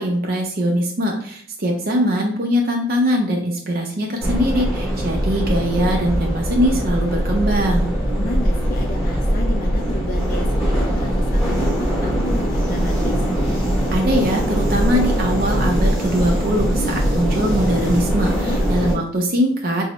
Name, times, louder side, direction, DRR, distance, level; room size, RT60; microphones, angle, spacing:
voice 1, 0.0-7.9 13.9-19.9, equal, 55° right, 1 dB, 0.6 m, -21 dB
sound 1, 4.2-19.0, equal, ahead, 1.0 m, -21 dB
voice 2, 8.1-13.2 18.4-18.7, left 2 dB, 50° left, 4 dB, 0.3 m, -32 dB
4.5 x 2.0 x 2.9 m, 0.62 s
head